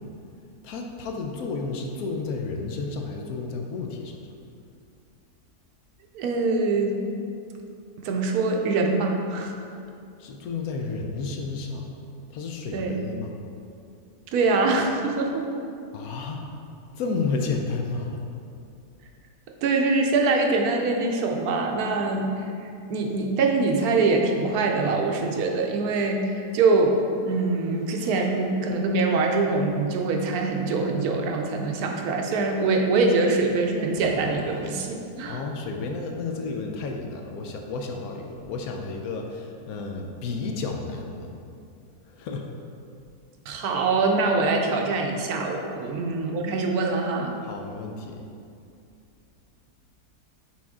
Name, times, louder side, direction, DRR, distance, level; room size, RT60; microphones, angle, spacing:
voice 1, 0.6-4.1 10.2-11.9 12.3-13.3 15.9-16.4 16.9-18.2 35.3-41.3 42.1-42.4 47.4-48.2, left 4 dB, 70° left, 2 dB, 1.0 m, -31 dB
voice 2, 6.1-7.0 8.0-9.5 12.7-13.0 14.3-15.5 19.6-22.4 22.9-27.0 27.2-35.4 43.5-47.3, right 3 dB, 75° right, 2 dB, 1.1 m, -24 dB
sound 1, 33.3-35.2, right 1 dB, 10° right, 0.3 m, -41 dB
6.0 x 4.4 x 3.5 m, 2.5 s
omnidirectional pair, 1.7 m